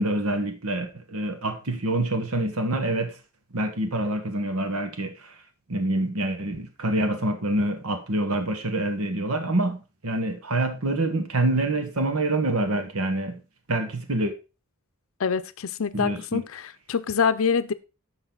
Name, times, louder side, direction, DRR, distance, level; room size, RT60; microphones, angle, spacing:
voice 1, 0.0-3.1 3.5-5.1 5.7-13.4 13.7-14.3 15.9-16.4, right 1 dB, 80° right, 1.4 m, -26 dB
voice 2, 15.2-17.7, left 6 dB, 65° left, 0.6 m, -25 dB
10.5 x 6.5 x 3.9 m
head